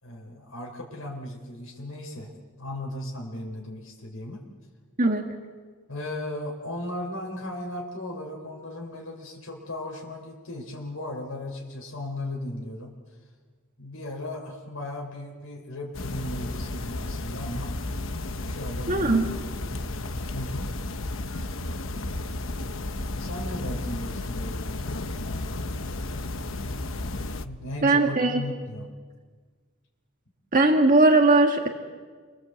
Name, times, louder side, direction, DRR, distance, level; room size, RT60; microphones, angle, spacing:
voice 1, 0.0-2.3 2.6-4.4 5.9-13.2 13.8-17.7 18.4-19.2 19.6-20.7 23.2-25.6 26.6-26.8 27.4-28.9, left 1 dB, 90° left, -1 dB, 4.6 m, -36 dB
sound 1, 15.9-27.5, left 2 dB, 70° left, 1.2 m, -33 dB
voice 2, 18.9-19.2 27.8-28.4 30.5-31.7, right 2 dB, 40° right, 2 dB, 1.8 m, -19 dB
29.5 x 24.0 x 8.2 m, 1.5 s
head